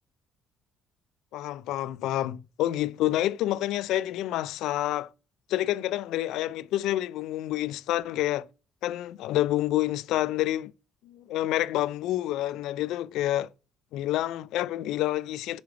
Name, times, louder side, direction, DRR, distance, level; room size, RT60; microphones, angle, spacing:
voice 1, 1.3-5.1 5.5-8.4 8.8-10.7 11.0-13.5 13.9-15.6, left 14 dB, 75° left, 0.3 m, -28 dB
6.7 x 3.2 x 4.8 m
supercardioid pair, 80°, 0 cm